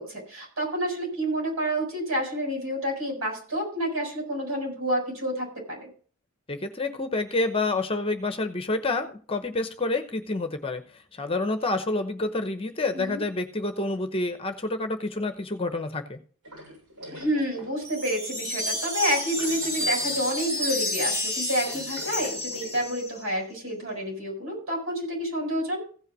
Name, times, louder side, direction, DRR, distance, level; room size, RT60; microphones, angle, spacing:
voice 1, 0.0-5.9 12.9-13.2 17.1-25.8, equal, 65° right, 0 dB, 6.8 m, -29 dB
voice 2, 6.5-10.8 11.1-16.2, left 2 dB, 25° left, 8 dB, 0.9 m, -28 dB
sound 1, 16.4-17.9 18.3-18.4 19.3-20.5 20.8-21.0 21.3-22.9, equal, 90° right, 7.2 m, -44 dB
sound 2, 17.8-23.2, left 1 dB, 15° right, 2.2 m, -30 dB
15.5 x 5.6 x 6.2 m, 0.42 s
head